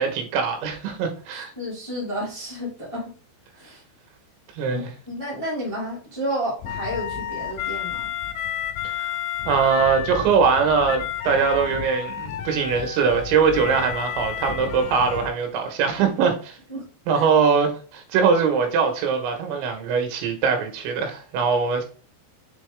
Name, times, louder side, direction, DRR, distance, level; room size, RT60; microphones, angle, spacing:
voice 1, 0.0-1.5 4.6-4.9 8.8-9.2 9.5-16.6 17.1-21.9, right 5 dB, 85° right, 3.5 m, -22 dB
voice 2, 1.3-3.1 3.5-3.8 4.7-8.1 16.7-16.8 17.1-17.3, equal, 50° left, 0.3 m, -31 dB
sound 1, 6.6-15.3, left 9 dB, 85° left, 3.0 m, -31 dB
7.4 x 3.8 x 3.5 m
omnidirectional pair, 5.2 m